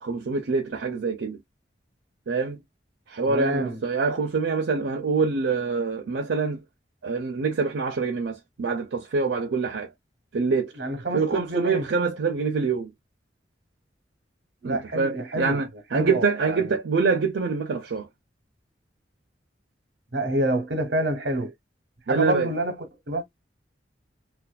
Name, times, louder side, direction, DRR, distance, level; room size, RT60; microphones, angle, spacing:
voice 1, 0.0-1.4 2.3-2.6 3.1-6.6 7.0-9.9 10.3-10.7 11.1-12.9 14.6-18.1 22.1-22.5, right 4 dB, 80° right, 0.5 m, -25 dB
voice 2, 3.2-3.8 10.8-11.9 14.6-15.6 15.9-16.8 20.1-21.5 22.1-23.2, right 1 dB, 65° right, 0.9 m, -28 dB
2.4 x 2.2 x 2.3 m
head